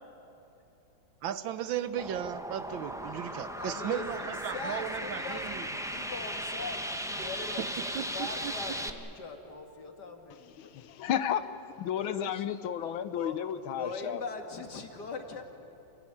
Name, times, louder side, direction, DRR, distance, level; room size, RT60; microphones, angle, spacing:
voice 1, 1.2-5.7 7.6-7.7 7.9-8.5, right 10 dB, 75° right, 13 dB, 1.5 m, -36 dB
sound 1, 2.0-8.9, equal, ahead, 0.7 m, -37 dB
voice 2, 3.6-10.7 11.9-12.5 13.1-13.4 13.8-15.4, left 3 dB, 55° left, 4 dB, 2.6 m, -41 dB
voice 3, 11.0-14.2, left 9 dB, 80° left, 12 dB, 1.6 m, -32 dB
27.5 x 17.0 x 9.9 m, 3.0 s
omnidirectional pair, 2.2 m